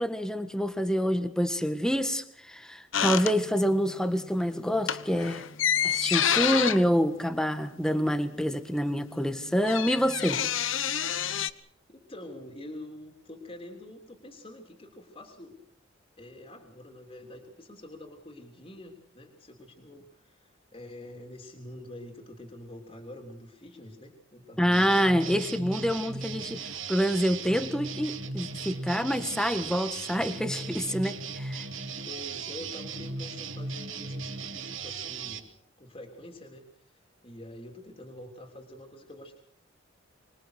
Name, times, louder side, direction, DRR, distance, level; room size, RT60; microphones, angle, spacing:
voice 1, 0.0-5.4 5.8-10.4 24.6-31.6, equal, 5° left, 9 dB, 1.6 m, -27 dB
sound 1, 2.9-3.9 4.2-4.4 4.7-8.2 8.5-8.6 8.8-11.5, left 9 dB, 75° left, 1.2 m, -29 dB
voice 2, 11.9-15.6 16.2-25.3 32.0-35.5 35.8-39.4, left 1 dB, 30° left, 3 dB, 3.4 m, -46 dB
sound 2, 24.7-35.4, right 4 dB, 75° right, 3.3 m, -37 dB
25.5 x 22.0 x 6.5 m, 0.64 s
head